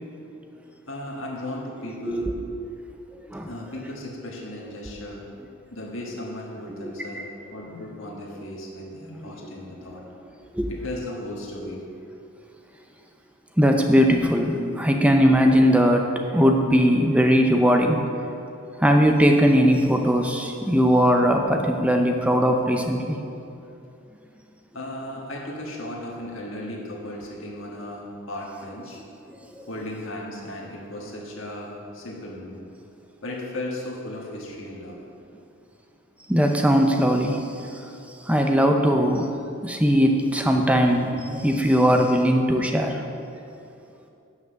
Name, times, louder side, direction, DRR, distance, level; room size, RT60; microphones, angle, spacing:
voice 1, 0.9-2.4 3.4-5.2 5.7-10.0 10.7-11.8 24.7-29.0 29.7-32.7 33.2-35.0, left 1 dB, 60° left, -3 dB, 1.6 m, -36 dB
voice 2, 13.6-18.0 18.8-23.2 36.3-37.5 38.3-39.3 39.6-43.0, equal, 5° right, 3 dB, 0.6 m, -19 dB
9.3 x 5.8 x 6.4 m, 2.7 s
head